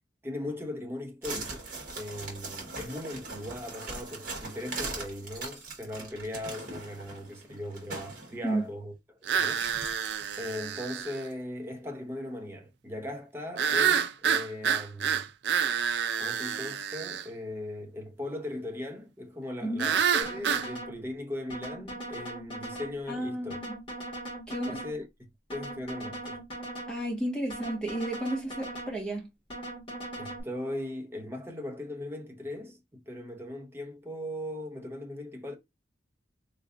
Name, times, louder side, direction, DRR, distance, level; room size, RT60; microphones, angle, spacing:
voice 1, 0.2-9.7 10.4-15.3 16.2-23.6 24.6-25.1 25.5-26.4 30.2-35.6, left 1 dB, 15° right, 0.8 m, -39 dB
sound 1, 1.2-8.4 9.4-10.9 11.3-11.4, right 3 dB, 50° right, 1.6 m, -40 dB
sound 2, 9.3-11.2 13.6-17.2 19.8-20.7, right 7 dB, 65° right, 0.4 m, -28 dB
sound 3, 20.2-21.0 21.5-23.0 23.5-25.0 25.5-27.0 27.5-29.0 29.5-30.4, right 1 dB, 30° left, 2.0 m, -39 dB
voice 2, 23.1-23.7 24.5-24.8 26.9-29.3, right 1 dB, 5° left, 1.4 m, -32 dB
3.7 x 3.2 x 2.5 m
head